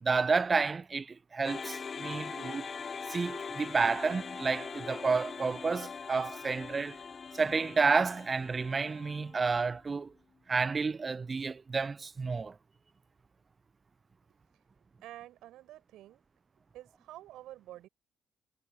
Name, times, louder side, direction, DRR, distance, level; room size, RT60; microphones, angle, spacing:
voice 1, 0.0-2.7 3.1-7.0 7.3-10.1 10.5-12.5, right 4 dB, 30° right, 1.0 m, -30 dB
sound 1, 1.4-9.7, left 5 dB, 40° left, 1.1 m, -42 dB
voice 2, 15.0-16.2 16.7-17.9, right 14 dB, 60° right, 7.5 m, -49 dB
figure-of-eight pair, 40°, 0 cm